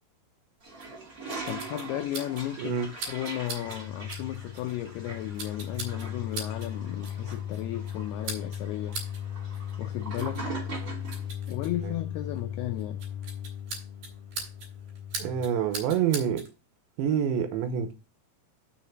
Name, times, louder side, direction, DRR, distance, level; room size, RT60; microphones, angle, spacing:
Toilet flush, 0.6-11.3, right 3 dB, 20° right, 3.0 m, -42 dB
sound 1, 0.8-16.5, right 3 dB, 50° right, 4.5 m, -43 dB
voice 1, 1.4-2.8 3.1-9.0 9.8-10.5 11.5-13.0, left 14 dB, 90° left, 2.2 m, -34 dB
sound 2, 3.7-15.5, left 9 dB, 60° left, 3.2 m, -37 dB
voice 2, 15.2-16.4 17.0-17.9, right 8 dB, 80° right, 3.2 m, -27 dB
6.8 x 5.6 x 5.9 m
omnidirectional pair, 5.3 m